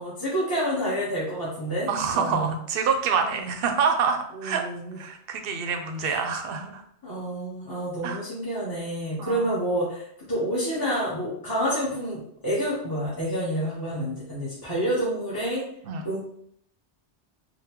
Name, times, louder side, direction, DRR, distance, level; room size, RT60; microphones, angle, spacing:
voice 1, 0.0-2.6 3.4-3.5 4.3-5.0 6.0-6.2 7.0-15.6 16.0-16.2, equal, 20° left, -8 dB, 0.9 m, -28 dB
voice 2, 1.9-4.6 5.0-6.8 8.0-8.2 9.2-9.5 15.8-16.1, right 6 dB, 65° right, 5 dB, 0.7 m, -26 dB
3.8 x 2.2 x 2.9 m, 0.65 s
omnidirectional pair, 1.2 m